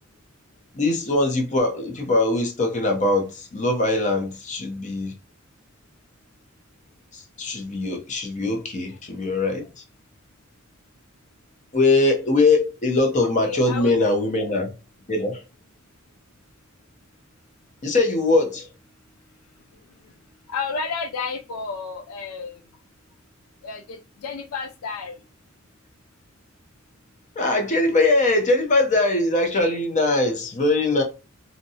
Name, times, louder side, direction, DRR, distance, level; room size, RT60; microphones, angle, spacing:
voice 1, 0.7-5.1 7.1-9.7 11.7-14.7 15.1-15.4 17.8-18.7 27.4-31.0, left 2 dB, 35° left, 0.6 m, -21 dB
voice 2, 13.2-13.9 20.5-22.6 23.6-25.2, left 5 dB, 80° left, 0.4 m, -31 dB
2.7 x 2.1 x 2.7 m
head